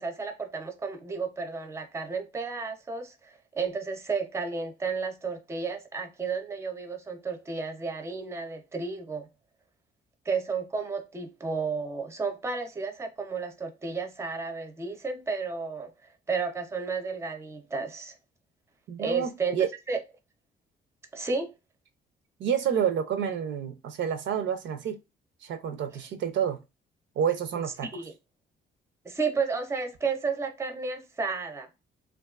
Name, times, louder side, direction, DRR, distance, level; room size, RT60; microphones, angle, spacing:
voice 1, 0.0-9.3 10.3-15.9 16.3-18.1 19.0-19.6 19.9-20.0 21.1-21.5 27.9-28.1 29.0-31.8, right 4 dB, 15° right, 0.5 m, -32 dB
voice 2, 18.9-19.7 22.4-25.0 25.4-26.6 27.2-27.9, right 8 dB, 70° right, 0.5 m, -29 dB
2.5 x 2.3 x 2.3 m
cardioid pair, 90°, 20 cm